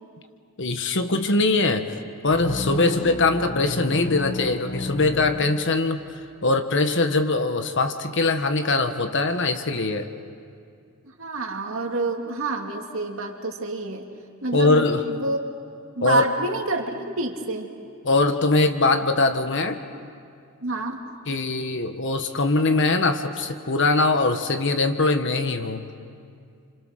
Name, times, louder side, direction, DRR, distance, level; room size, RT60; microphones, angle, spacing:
voice 1, 0.6-2.0 2.2-6.0 6.4-10.1 14.5-15.0 16.0-16.2 18.0-19.8 21.3-25.8, left 3 dB, 55° left, 7 dB, 1.4 m, -22 dB
sound 1, 2.3-6.1, left 3 dB, 30° left, 0.7 m, -32 dB
voice 2, 11.0-14.1 14.4-15.4 16.0-17.7 20.6-21.0, right 2 dB, 60° right, 2 dB, 2.4 m, -28 dB
30.0 x 26.5 x 6.5 m, 2.4 s
head